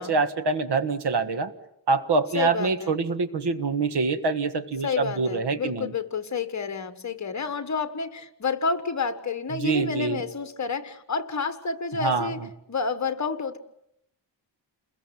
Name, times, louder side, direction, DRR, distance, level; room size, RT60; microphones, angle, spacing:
voice 1, 0.0-1.5 1.9-5.9 9.5-10.2 12.0-12.5, right 4 dB, 60° right, 10 dB, 1.7 m, -25 dB
voice 2, 2.3-3.0 4.8-12.4 12.7-13.6, left 5 dB, 40° left, 10 dB, 1.6 m, -29 dB
29.0 x 21.5 x 7.7 m, 0.76 s
wide cardioid pair, 175°, 45 cm